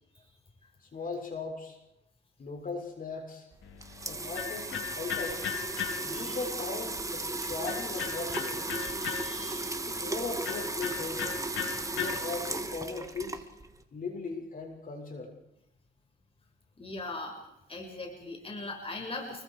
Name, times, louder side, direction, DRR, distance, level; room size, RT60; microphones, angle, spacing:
voice 1, 0.8-1.8 2.4-3.5 4.1-5.5 6.0-8.6 9.9-11.2 11.9-13.4 13.9-15.3, left 4 dB, 45° left, 2 dB, 6.6 m, -38 dB
sound 1, 3.5-13.8, right 2 dB, 15° right, 2.0 m, -36 dB
Electric guitar, 3.6-12.7, left 8 dB, 85° left, 4.1 m, -39 dB
voice 2, 8.7-9.7 16.8-17.4 17.7-19.4, left 2 dB, 30° left, 3 dB, 6.3 m, -40 dB
29.5 x 22.5 x 5.0 m, 0.88 s
cardioid pair, 90°, 20 cm